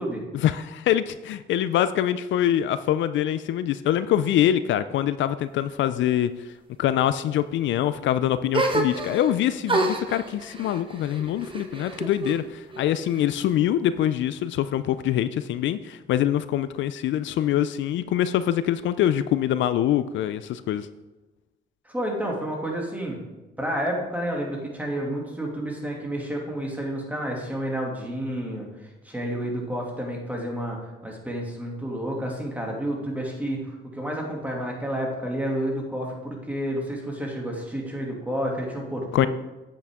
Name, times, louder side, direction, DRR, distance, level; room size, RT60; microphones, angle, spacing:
voice 1, 0.3-20.9 39.1-39.3, left 11 dB, 70° left, 13 dB, 0.4 m, -24 dB
sound 1, 8.5-9.3 9.7-12.4 12.7-13.6, right 2 dB, 25° right, 1.1 m, -28 dB
voice 2, 21.8-23.2 23.6-39.3, equal, 10° right, -1 dB, 2.4 m, -30 dB
8.4 x 8.2 x 3.6 m, 1.1 s
cardioid pair, 90°, 20 cm